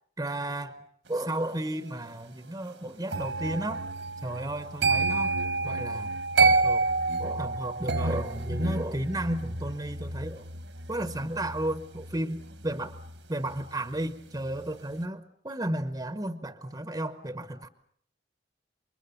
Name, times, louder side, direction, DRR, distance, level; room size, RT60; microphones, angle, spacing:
voice 1, 0.2-0.8 1.1-3.8 4.2-5.3 5.6-6.9 7.2-10.5 10.9-13.0 13.3-17.7, right 1 dB, 20° right, 11 dB, 1.0 m, -33 dB
sound 1, 3.1-14.1 14.4-14.7, right 3 dB, 75° right, 1.7 m, -29 dB
29.0 x 24.0 x 7.1 m, 0.64 s
head